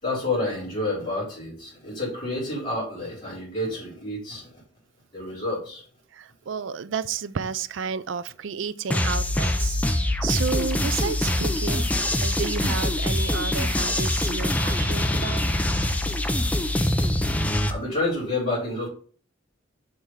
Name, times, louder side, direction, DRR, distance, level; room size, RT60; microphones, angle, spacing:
voice 1, 0.0-4.5 5.1-5.8 17.7-18.9, left 2 dB, 35° left, 3.7 m, -29 dB
voice 2, 6.1-15.4, right 6 dB, 75° right, 0.4 m, -32 dB
sound 1, 8.9-17.7, left 1 dB, 10° left, 0.5 m, -24 dB
6.4 x 3.4 x 5.6 m
head